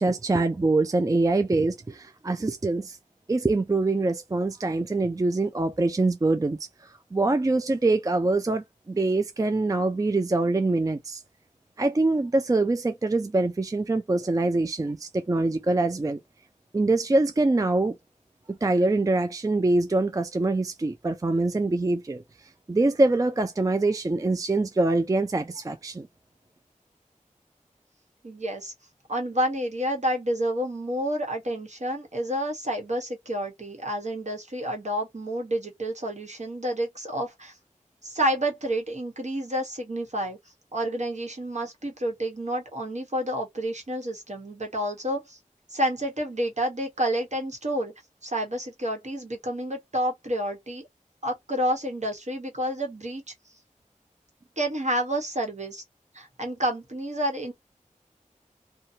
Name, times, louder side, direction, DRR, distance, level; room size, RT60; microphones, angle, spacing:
voice 1, 0.0-3.0 3.3-11.2 11.8-16.2 16.7-17.9 18.5-26.1, right 2 dB, 25° right, 0.3 m, -24 dB
voice 2, 28.2-28.7 29.1-37.5 38.0-40.4 40.7-45.4 45.7-47.9 48.2-50.9 51.2-53.2 54.6-55.8 56.1-57.5, equal, 60° right, 1.1 m, -29 dB
2.7 x 2.2 x 2.6 m
wide cardioid pair, 55°, 14 cm